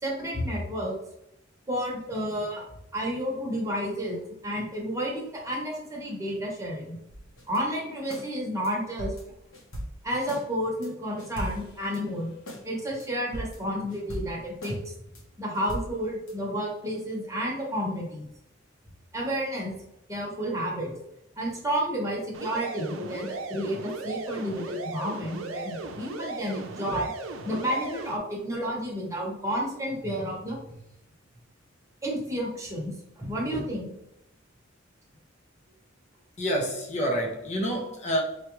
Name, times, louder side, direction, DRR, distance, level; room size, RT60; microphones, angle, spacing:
voice 1, 0.0-1.0 1.7-2.6 2.9-7.0 7.5-9.1 10.0-12.3 12.6-14.9 15.4-18.3 19.1-19.7 20.1-20.9 21.4-27.1 27.4-30.7 32.0-33.9 37.7-37.8, equal, 15° right, -3 dB, 1.0 m, -31 dB
sound 1, 7.1-7.6 8.1-8.3 8.6-8.7 9.0-10.4 10.8-10.9 11.2-12.6 13.0-13.1 13.3-14.8 15.1-15.2 15.5-16.3, equal, 85° left, 1.0 m, -39 dB
sound 2, 22.3-28.2, right 3 dB, 90° right, 0.5 m, -37 dB
voice 2, 36.4-38.2, equal, 35° left, -1 dB, 0.7 m, -28 dB
4.5 x 2.4 x 3.0 m, 0.81 s
head